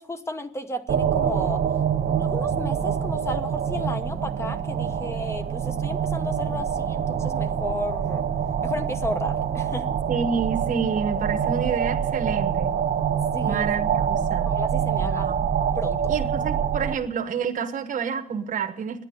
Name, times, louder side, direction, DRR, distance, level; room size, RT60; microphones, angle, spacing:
voice 1, 0.0-1.6 2.2-8.2 8.6-9.9 13.3-13.7 14.4-15.3 15.7-16.2, left 1 dB, 15° left, 9 dB, 0.9 m, -33 dB
sound 1, 0.9-17.0, right 8 dB, 80° right, 1.2 m, -25 dB
voice 2, 10.1-12.8 13.5-14.5 15.0-15.5 16.1-19.0, right 6 dB, 55° right, 5 dB, 1.1 m, -29 dB
10.5 x 10.5 x 8.1 m, 0.69 s
wide cardioid pair, 160°, 16 cm